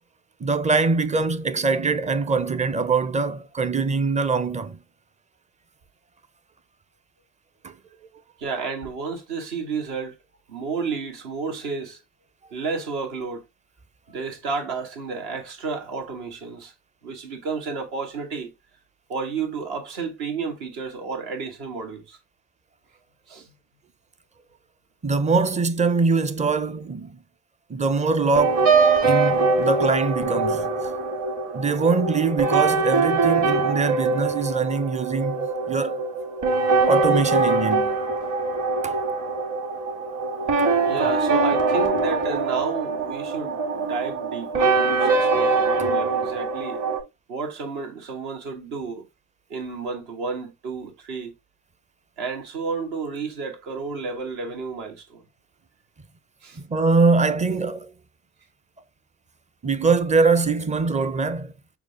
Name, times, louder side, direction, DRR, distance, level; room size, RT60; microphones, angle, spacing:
voice 1, 0.4-4.8 7.6-7.7 25.0-27.2 27.7-28.7 29.0-30.7 31.5-36.0 36.9-37.9 38.8-39.0 56.6-57.9 59.6-61.5, right 4 dB, 15° right, 0.5 m, -23 dB
voice 2, 8.4-10.1 10.5-12.0 12.4-13.4 14.1-16.7 17.0-18.5 19.1-22.2 23.3-23.5 40.8-46.8 47.3-49.0 49.5-51.3 52.2-55.2 56.4-56.6, right 4 dB, 65° right, 1.5 m, -31 dB
sound 1, 28.1-47.0, right 4 dB, 45° right, 2.1 m, -23 dB
6.5 x 2.4 x 3.3 m
figure-of-eight pair, 50°, 41 cm